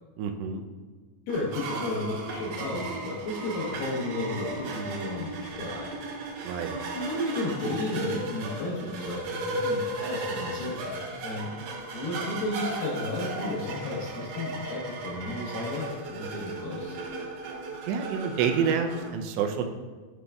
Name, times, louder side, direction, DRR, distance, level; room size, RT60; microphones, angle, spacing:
voice 1, 0.2-0.6 6.4-6.8 17.9-19.6, right 6 dB, 90° right, 4 dB, 2.8 m, -28 dB
voice 2, 1.3-5.9 6.9-10.9 11.2-11.5 11.9-17.0, left 2 dB, 75° left, -4 dB, 2.3 m, -33 dB
sound 1, 1.3-19.1, right 2 dB, 70° right, 2.4 m, -35 dB
9.8 x 5.1 x 2.3 m, 1.4 s
omnidirectional pair, 4.9 m